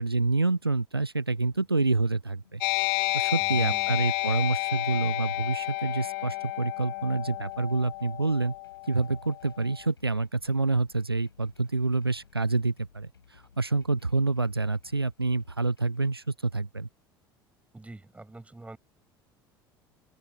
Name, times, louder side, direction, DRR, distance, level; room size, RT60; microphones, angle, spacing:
voice 1, 0.0-8.5 8.9-16.9, right 3 dB, 85° right, 0.7 m, -28 dB
sound 1, 1.3-16.3, left 7 dB, 75° left, 6.5 m, -60 dB
sound 2, 2.6-9.7, left 27 dB, 55° left, 0.5 m, -31 dB
voice 2, 3.4-3.9 17.7-18.8, right 2 dB, 10° right, 7.8 m, -45 dB
open air
figure-of-eight pair, 65°, 12 cm